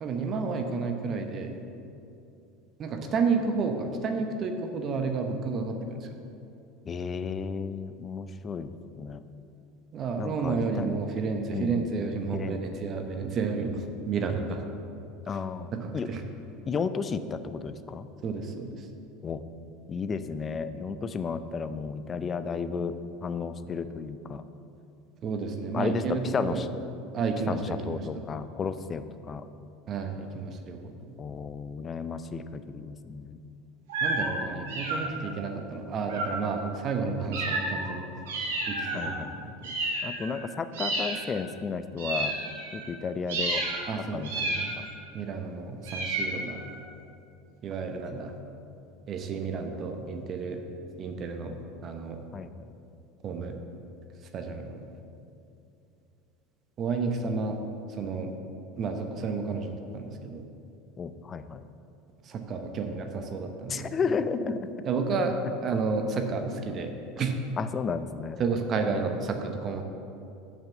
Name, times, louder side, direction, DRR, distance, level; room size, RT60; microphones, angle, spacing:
voice 1, 0.0-1.6 2.8-6.2 9.9-14.6 15.8-16.2 18.2-18.9 25.2-26.7 27.1-28.2 29.9-30.9 34.0-38.1 38.7-39.7 43.9-44.7 45.1-46.6 47.6-48.3 49.1-50.6 51.0-51.6 51.8-52.2 53.2-53.6 54.3-54.9 56.8-57.6 58.0-58.3 58.8-60.4 62.2-64.2 64.8-65.3 65.6-66.9 67.2-67.3 68.4-69.8, right 4 dB, 40° right, 5 dB, 1.0 m, -31 dB
voice 2, 6.9-9.2 10.2-10.9 11.5-11.9 12.3-12.8 15.3-16.1 16.7-18.1 19.2-19.4 19.9-23.0 23.2-24.4 25.7-26.7 27.5-29.4 31.2-33.4 38.9-39.5 40.0-42.4 42.7-43.6 44.1-44.9 52.3-52.7 61.0-61.6 63.7-64.7 67.6-68.4, left 5 dB, 30° left, 12 dB, 0.5 m, -33 dB
sound 1, 33.9-34.3 34.7-35.3 36.1-36.5 37.3-37.9 38.3-39.1 39.6-40.4 40.7-41.4 42.0-42.9 43.3-43.8 44.2-45.0 45.9-46.8, right 2 dB, 70° right, 1.7 m, -31 dB
7.2 x 6.4 x 7.3 m, 2.7 s
figure-of-eight pair, 75°, 0 cm